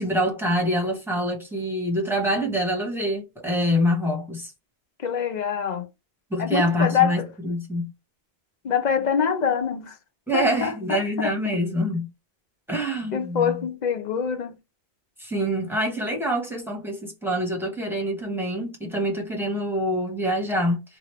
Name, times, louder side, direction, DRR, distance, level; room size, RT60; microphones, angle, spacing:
voice 1, 0.0-4.5 6.3-7.9 10.3-12.1 12.7-13.5 15.2-20.8, equal, ahead, 1.0 m, -25 dB
voice 2, 5.0-5.9 6.4-7.3 8.6-10.0 10.3-11.3 13.1-14.6, left 7 dB, 50° left, 0.6 m, -25 dB
3.0 x 2.5 x 3.1 m
omnidirectional pair, 1.1 m